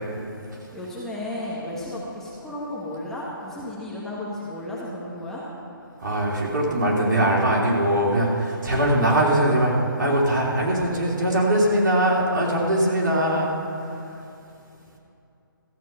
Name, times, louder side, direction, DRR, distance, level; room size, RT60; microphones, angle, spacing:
voice 1, 0.7-5.4, left 1 dB, 5° left, -7 dB, 1.5 m, -33 dB
voice 2, 6.0-13.5, right 1 dB, 60° right, -3 dB, 3.0 m, -21 dB
14.0 x 8.3 x 5.8 m, 2.7 s
figure-of-eight pair, 145°, 12 cm